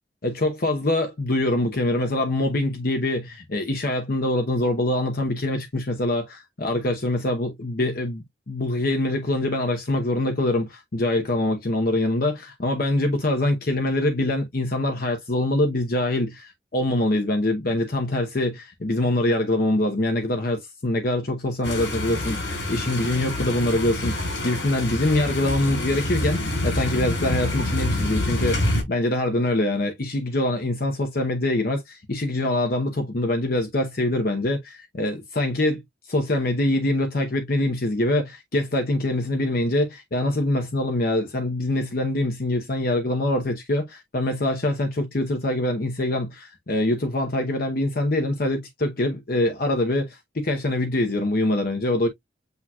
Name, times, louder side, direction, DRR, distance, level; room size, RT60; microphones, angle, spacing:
voice 1, 0.2-52.1, left 1 dB, 55° left, 0.8 m, -24 dB
sound 1, 21.6-28.8, left 1 dB, 85° left, 3.5 m, -27 dB
8.1 x 2.8 x 2.3 m
head